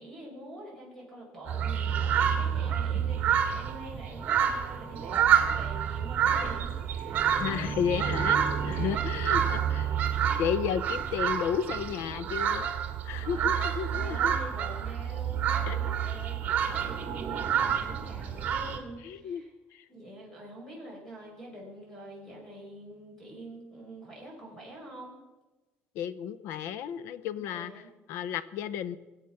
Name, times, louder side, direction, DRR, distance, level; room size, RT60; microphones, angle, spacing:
voice 1, 0.0-7.7 8.6-9.1 13.2-13.5 13.9-19.5 19.9-25.1 27.4-27.9, right 1 dB, 10° left, -2 dB, 5.6 m, -46 dB
sound 1, 1.5-18.8, right 8 dB, 40° right, 1.9 m, -28 dB
voice 2, 7.4-10.0 10.4-12.7 13.0-14.3 15.7-16.0 19.0-19.4 19.7-19.8 25.9-29.0, left 8 dB, 80° left, 16 dB, 0.7 m, -33 dB
22.5 x 8.1 x 5.9 m, 1.1 s
cardioid pair, 160°, 4 cm